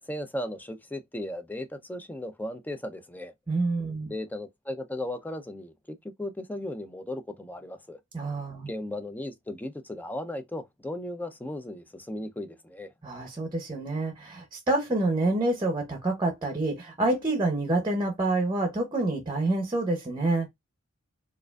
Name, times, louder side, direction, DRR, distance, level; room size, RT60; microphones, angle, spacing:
voice 1, 0.1-3.3 4.0-8.0 8.7-12.9, left 1 dB, 10° left, 0.5 m, -36 dB
voice 2, 3.5-4.1 8.1-8.7 13.0-20.5, right 2 dB, 20° right, 0.8 m, -27 dB
4.7 x 2.5 x 2.3 m
head